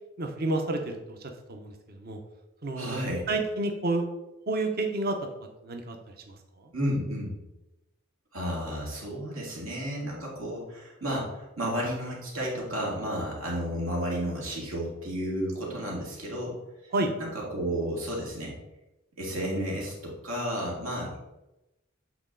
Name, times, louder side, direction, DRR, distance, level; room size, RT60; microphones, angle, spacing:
voice 1, 0.2-2.2 2.6-3.0 3.3-4.1 4.5-5.2 5.6-6.3 6.6-6.7 16.9-17.1, right 2 dB, 50° right, 4 dB, 0.8 m, -30 dB
voice 2, 2.8-3.2 6.7-7.3 8.3-16.6 17.2-18.5 19.2-21.2, equal, 85° right, -3 dB, 2.2 m, -32 dB
7.9 x 4.0 x 3.8 m, 0.96 s
head